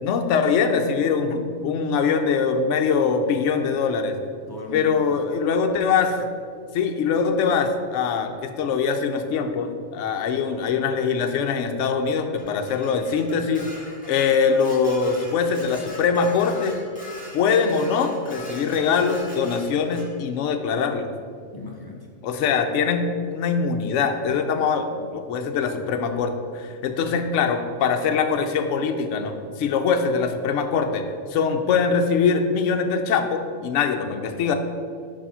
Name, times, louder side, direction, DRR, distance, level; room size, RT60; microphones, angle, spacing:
voice 1, 0.0-4.2 4.7-6.2 6.7-13.7 14.1-16.8 17.3-21.1 22.2-34.5, left 5 dB, 65° left, 6 dB, 0.9 m, -23 dB
voice 2, 4.5-5.2 21.5-22.1 24.5-24.6, left 2 dB, 25° left, -1 dB, 0.5 m, -39 dB
Dishes pots and pans, 12.4-20.1, left 1 dB, 5° left, 1.4 m, -42 dB
5.1 x 4.9 x 5.5 m, 2.2 s
omnidirectional pair, 1.5 m